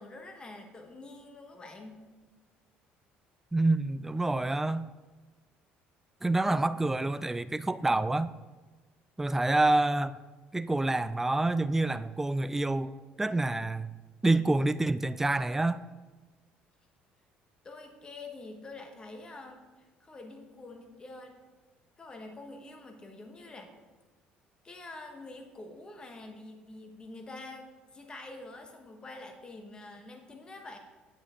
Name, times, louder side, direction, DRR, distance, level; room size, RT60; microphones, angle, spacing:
voice 1, 0.0-2.0 17.6-21.4 22.0-23.7 24.6-30.8, left 2 dB, 25° left, 1.2 m, -46 dB
voice 2, 3.5-4.9 6.2-8.3 9.2-10.1 10.5-13.9 14.2-15.8, right 2 dB, 10° right, 0.3 m, -27 dB
8.7 x 8.3 x 3.7 m
cardioid pair, 115°, 4 cm